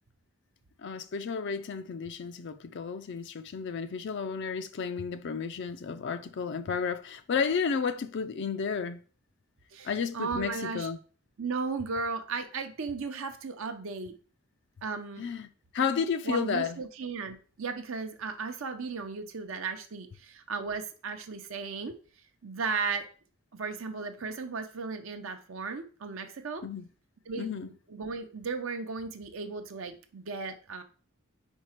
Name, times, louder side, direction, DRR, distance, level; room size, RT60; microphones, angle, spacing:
voice 1, 0.8-9.0 9.8-11.0 15.2-15.5 15.7-16.8 26.6-26.9 27.4-27.7, left 6 dB, 55° left, 0.4 m, -32 dB
voice 2, 10.1-10.9 11.4-14.1 14.8-15.3 16.2-21.9 22.4-23.1 23.5-26.6 27.3-30.8, right 4 dB, 65° right, 0.6 m, -35 dB
4.8 x 4.5 x 4.4 m
head